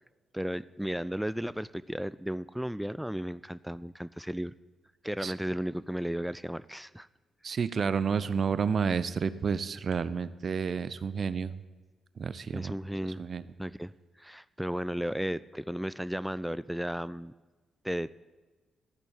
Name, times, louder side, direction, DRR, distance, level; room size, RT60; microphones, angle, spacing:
voice 1, 0.3-4.5 5.0-7.1 12.5-13.2 13.6-13.9 14.2-17.3 17.8-18.1, equal, 5° right, 17 dB, 0.3 m, -34 dB
voice 2, 7.4-11.6 12.2-12.7 13.0-13.4, right 6 dB, 55° right, 15 dB, 0.6 m, -30 dB
13.5 x 6.3 x 8.8 m, 1.3 s
hypercardioid pair, 45°, 0 cm